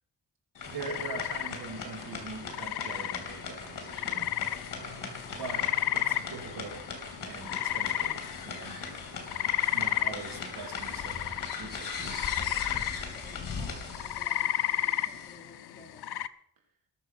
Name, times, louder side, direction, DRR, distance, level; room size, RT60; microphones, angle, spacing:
sound 1, 0.5-15.4, left 5 dB, 60° left, 3.2 m, -40 dB
sound 2, 0.7-16.3, left 12 dB, 90° left, 0.7 m, -33 dB
voice 1, 0.7-4.3 4.7-6.8 7.2-8.8 9.7-11.2 11.6-12.2, right 4 dB, 65° right, 2 dB, 3.1 m, -43 dB
voice 2, 13.1-16.1, left 2 dB, 25° left, -2 dB, 4.0 m, -53 dB
20.0 x 6.9 x 5.9 m, 0.70 s
wide cardioid pair, 160°, 38 cm